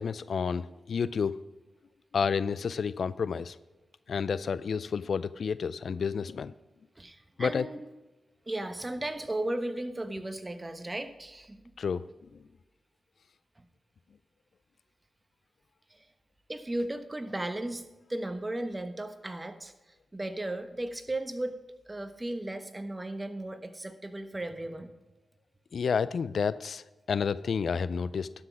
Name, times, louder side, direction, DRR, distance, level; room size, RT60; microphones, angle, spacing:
voice 1, 0.0-1.4 2.1-3.6 4.1-6.5 7.4-7.7 11.8-12.0 25.7-28.3, left 6 dB, 70° left, 17 dB, 0.3 m, -30 dB
voice 2, 7.0-7.8 8.5-11.6 13.6-13.7 15.9-16.1 16.5-24.9, right 1 dB, 25° right, 9 dB, 1.1 m, -36 dB
12.0 x 6.2 x 6.2 m, 1.1 s
supercardioid pair, 40°, 0 cm